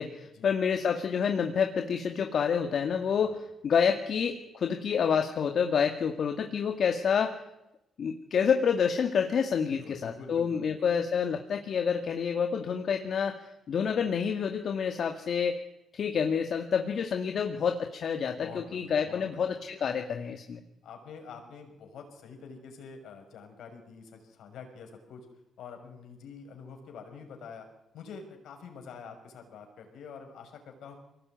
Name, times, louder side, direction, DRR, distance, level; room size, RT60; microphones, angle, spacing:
voice 1, 0.0-7.4 8.0-15.6 15.9-20.6, left 7 dB, 60° left, 5 dB, 2.1 m, -28 dB
voice 2, 9.7-10.9 18.4-19.6 20.8-25.2 25.6-27.7 27.9-31.0, left 5 dB, 75° left, 4 dB, 6.3 m, -46 dB
23.5 x 18.5 x 9.4 m, 0.89 s
cardioid pair, 90°, 0 cm